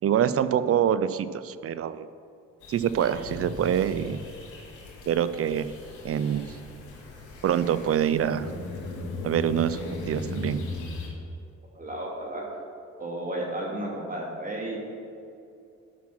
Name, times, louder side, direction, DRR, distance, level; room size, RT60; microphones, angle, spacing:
voice 1, 0.0-2.1 2.7-4.2 5.1-5.7 6.0-6.4 7.4-8.5 9.2-10.6, right 9 dB, 50° right, 14 dB, 0.5 m, -25 dB
sound 1, 2.6-11.1, left 2 dB, 90° left, 2.8 m, -38 dB
voice 2, 11.7-12.4 13.0-14.8, right 1 dB, 25° right, -2 dB, 2.6 m, -33 dB
11.0 x 6.0 x 6.1 m, 2.6 s
cardioid pair, 90°, 30 cm